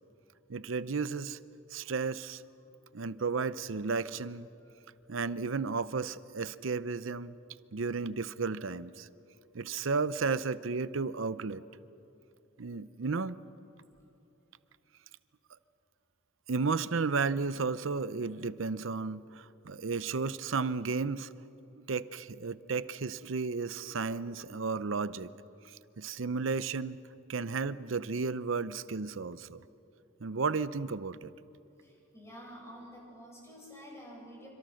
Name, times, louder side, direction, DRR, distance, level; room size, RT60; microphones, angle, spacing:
voice 1, 0.5-1.4 1.7-2.4 2.9-4.5 5.1-7.3 7.7-9.1 9.5-11.6 12.6-13.4 16.5-21.3 21.9-25.3 26.0-27.0 27.3-29.6 30.2-31.3, right 4 dB, 75° right, 16 dB, 0.7 m, -33 dB
voice 2, 31.8-34.5, equal, 15° left, -3 dB, 7.7 m, -49 dB
27.0 x 25.0 x 6.5 m, 2.9 s
head